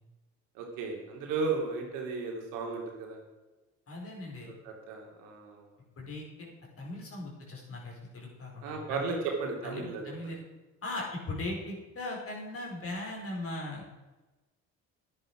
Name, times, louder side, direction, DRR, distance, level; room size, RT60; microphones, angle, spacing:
voice 1, 0.5-3.2 4.4-5.7 8.6-10.3, right 4 dB, 90° right, 1 dB, 2.6 m, -35 dB
voice 2, 3.9-4.5 6.0-6.5 6.8-9.0 9.6-10.4 10.8-13.8, left 2 dB, 45° left, -2 dB, 4.7 m, -39 dB
10.5 x 10.0 x 4.9 m, 1.1 s
supercardioid pair, 70°, 31 cm